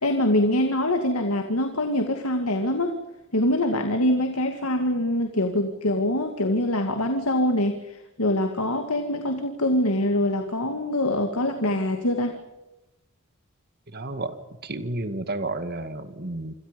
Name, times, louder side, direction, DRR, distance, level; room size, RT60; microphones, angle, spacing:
voice 1, 0.0-3.0 3.3-12.4, left 1 dB, 85° left, 6 dB, 2.2 m, -24 dB
voice 2, 13.9-14.4 14.6-16.5, right 2 dB, 45° right, 10 dB, 2.2 m, -31 dB
27.0 x 26.5 x 5.3 m, 1.0 s
head